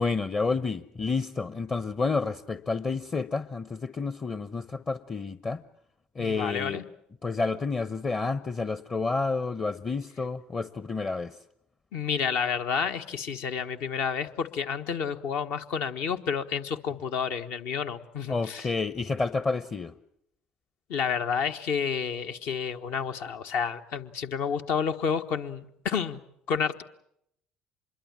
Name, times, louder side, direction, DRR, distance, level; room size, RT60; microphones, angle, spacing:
voice 1, 0.0-5.6 6.1-6.8 7.2-11.3 18.3-19.9, left 4 dB, 30° left, 13 dB, 1.0 m, -30 dB
voice 2, 6.2-6.8 11.9-18.7 20.9-26.2 26.5-26.8, left 6 dB, 65° left, 7 dB, 1.3 m, -30 dB
26.0 x 22.0 x 7.5 m, 0.74 s
hypercardioid pair, 60°, 4 cm